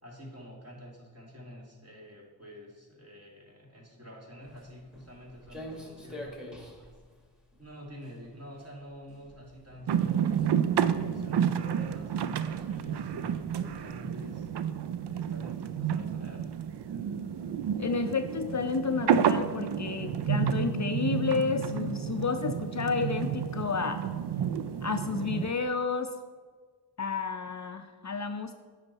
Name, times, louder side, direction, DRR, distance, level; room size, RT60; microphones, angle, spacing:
voice 1, 0.0-7.0 7.6-14.5 15.1-16.5, equal, 35° right, -2 dB, 2.3 m, -48 dB
Walk footsteps, 4.4-13.9, left 1 dB, ahead, 1.6 m, -49 dB
sound 1, 9.9-25.5, right 8 dB, 65° right, 0.5 m, -30 dB
voice 2, 17.8-24.0 24.8-26.1 27.0-28.5, left 5 dB, 40° left, 8 dB, 0.5 m, -31 dB
8.9 x 5.8 x 4.1 m, 1.5 s
cardioid pair, 45°, 44 cm